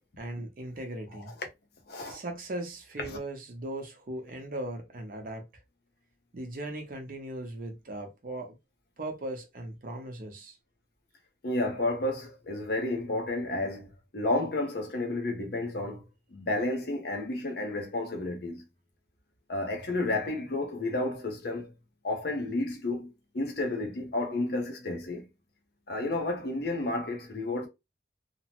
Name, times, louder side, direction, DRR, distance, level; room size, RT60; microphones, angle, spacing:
voice 1, 0.2-1.3 2.1-5.5 6.3-8.6 9.0-10.6, right 1 dB, 50° right, 0.7 m, -38 dB
voice 2, 1.9-2.2 3.0-3.2 11.4-16.1 16.3-18.6 19.5-21.7 22.0-25.2 25.9-27.7, left 2 dB, 60° left, 0.7 m, -31 dB
2.9 x 2.0 x 2.8 m
head